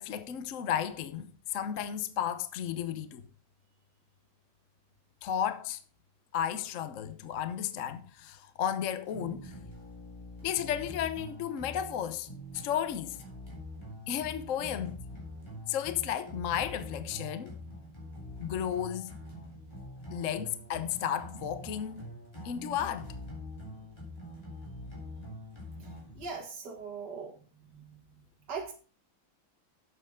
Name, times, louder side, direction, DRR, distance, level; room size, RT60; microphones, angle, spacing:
voice 1, 0.0-3.3 5.2-5.8 6.3-9.5 10.4-12.3 12.5-13.2 14.1-15.0 15.7-17.6 18.4-19.1 20.1-22.1 22.4-23.1, left 9 dB, 55° left, 0.9 m, -33 dB
sound 1, 9.1-26.3, left 1 dB, 10° left, 3.7 m, -45 dB
voice 2, 25.8-27.4 27.7-28.0 28.5-28.7, right 5 dB, 55° right, 2.3 m, -41 dB
11.5 x 7.9 x 3.7 m
omnidirectional pair, 2.3 m